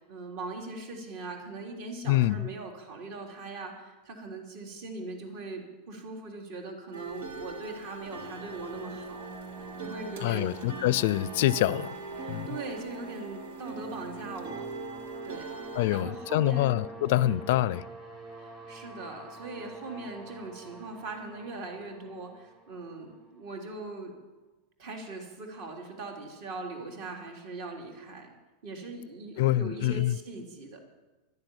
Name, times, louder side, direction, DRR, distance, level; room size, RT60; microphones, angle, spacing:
voice 1, 0.0-9.3 9.8-10.5 12.2-14.7 15.2-15.5 15.9-16.8 17.1-17.4 18.4-24.1 24.8-28.3 28.6-30.8, right 3 dB, 50° right, 3.3 m, -40 dB
voice 2, 2.1-2.5 10.2-11.9 12.3-12.5 15.7-17.8 29.4-30.1, left 15 dB, 60° left, 0.5 m, -26 dB
sound 1, 6.9-16.0, right 3 dB, 90° right, 1.8 m, -41 dB
sound 2, 7.8-23.6, right 2 dB, 25° right, 4.2 m, -46 dB
12.0 x 10.5 x 10.0 m
supercardioid pair, 170°, 0 cm